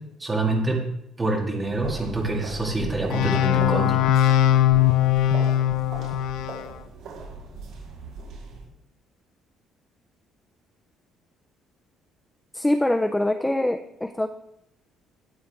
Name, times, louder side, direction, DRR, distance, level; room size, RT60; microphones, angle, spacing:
voice 1, 0.2-0.8 1.2-4.0, right 2 dB, 15° right, -1 dB, 2.1 m, -26 dB
sound 1, 1.6-8.6, right 3 dB, 65° right, 4.3 m, -38 dB
sound 2, 3.1-6.7, left 11 dB, 65° left, 0.5 m, -20 dB
voice 2, 12.5-14.3, left 1 dB, 5° left, 8 dB, 0.4 m, -24 dB
13.0 x 8.6 x 3.5 m, 0.81 s
cardioid pair, 180°, 0 cm